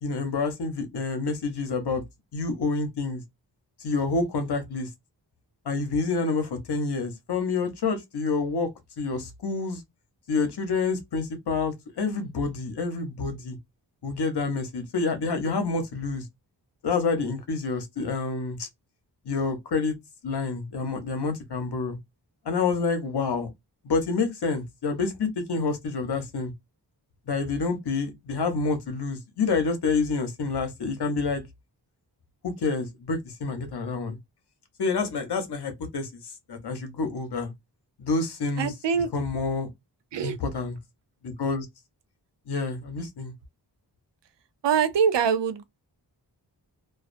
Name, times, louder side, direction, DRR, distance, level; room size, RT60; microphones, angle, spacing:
voice 1, 0.0-2.0 2.3-3.2 3.8-4.9 5.7-8.7 9.0-9.8 10.3-13.6 14.0-16.2 16.8-18.7 19.3-20.0 20.2-22.0 22.5-23.5 23.8-26.5 27.3-31.4 32.4-34.2 34.8-36.1 36.5-37.5 38.0-38.7 39.1-39.7 40.2-40.8 41.2-41.7 42.5-43.3, left 4 dB, 70° left, 0.8 m, -28 dB
voice 2, 38.6-39.1 40.1-40.4 44.6-45.6, right 7 dB, 90° right, 0.6 m, -24 dB
2.4 x 2.2 x 2.4 m
wide cardioid pair, 110°, 41 cm